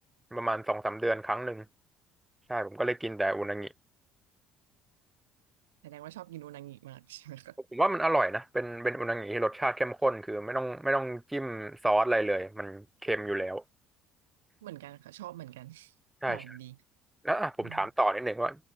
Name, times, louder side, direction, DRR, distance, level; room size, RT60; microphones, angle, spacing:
voice 1, 0.3-1.6 2.5-3.7 7.7-13.6 16.2-16.4 17.2-18.6, right 1 dB, 10° right, 8.0 m, -30 dB
voice 2, 5.8-7.6 14.6-15.9 16.3-16.8 17.6-17.9, right 15 dB, 90° right, 5.3 m, -45 dB
hypercardioid pair, 65°, 0 cm